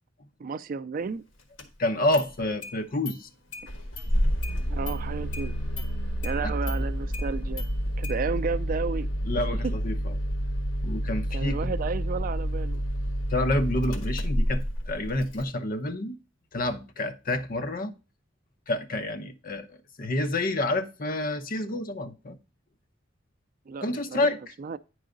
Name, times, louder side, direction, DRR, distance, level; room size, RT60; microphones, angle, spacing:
voice 1, 0.4-1.2 4.7-5.6 6.2-7.7 8.0-9.1 9.6-9.7 11.3-12.8 23.7-24.3 24.6-24.8, right 5 dB, 45° right, 0.4 m, -32 dB
Engine starting, 1.6-1.7 2.1-2.7 3.1-3.2 3.5-15.4, equal, 80° left, 1.5 m, -29 dB
voice 2, 1.8-3.3 6.4-6.5 9.3-10.1 10.8-11.7 13.3-16.2 16.5-17.9 18.7-22.4 23.8-24.4, left 1 dB, 45° left, 0.9 m, -28 dB
9.7 x 4.8 x 3.8 m
head